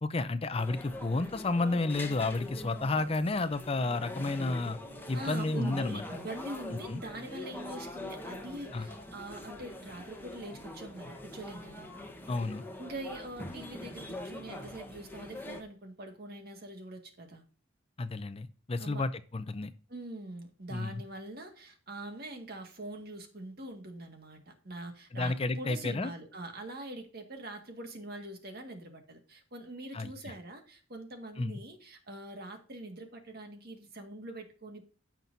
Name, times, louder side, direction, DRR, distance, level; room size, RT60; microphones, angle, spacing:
voice 1, 0.0-4.8 5.1-6.0 6.9-7.0 8.7-8.9 12.3-12.6 18.0-19.7 20.7-21.0 25.1-26.1 29.9-30.1 31.4-31.6, left 3 dB, 30° left, 12 dB, 0.5 m, -31 dB
sound 1, 0.6-15.6, left 1 dB, 10° left, 1.1 m, -44 dB
voice 2, 5.1-11.9 12.8-17.4 18.8-19.0 19.9-34.9, right 1 dB, 55° right, 4 dB, 1.8 m, -43 dB
15.0 x 5.9 x 2.7 m, 0.37 s
head